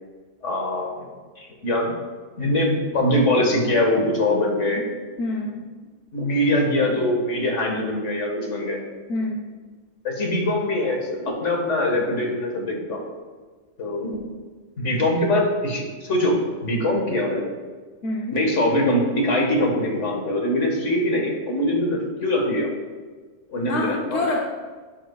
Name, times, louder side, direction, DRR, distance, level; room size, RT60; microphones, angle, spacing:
voice 1, 0.4-1.1 1.4-1.9 2.4-4.9 6.1-8.8 10.0-13.0 13.8-14.2 14.8-16.4 16.6-17.5 18.3-22.7 23.5-24.2, left 1 dB, 85° left, 0 dB, 1.9 m, -23 dB
voice 2, 5.2-5.6 9.1-9.5 18.0-18.4 23.7-24.4, left 2 dB, 70° left, 0 dB, 1.1 m, -26 dB
12.0 x 7.5 x 2.3 m, 1.4 s
omnidirectional pair, 1.2 m